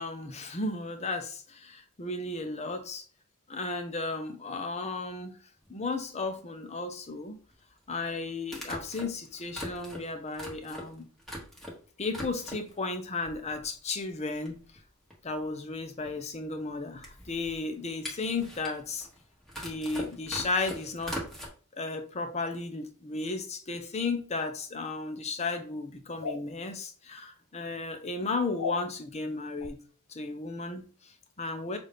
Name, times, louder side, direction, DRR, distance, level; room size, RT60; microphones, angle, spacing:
voice 1, 0.0-3.0 3.5-5.4 5.7-7.4 7.9-11.1 12.0-14.5 15.2-19.1 19.6-21.2 21.7-29.8 30.1-31.8, left 3 dB, 30° left, 7 dB, 0.6 m, -34 dB
sound 1, 5.6-5.7 7.5-7.6 8.5-11.8 12.1-12.8 13.2-13.9 14.1-14.2 14.4-21.5, equal, ahead, 1.2 m, -41 dB
sound 2, 26.2-26.4 28.6-28.8 29.6-29.7, left 5 dB, 85° left, 0.5 m, -34 dB
5.9 x 2.5 x 3.4 m, 0.41 s
head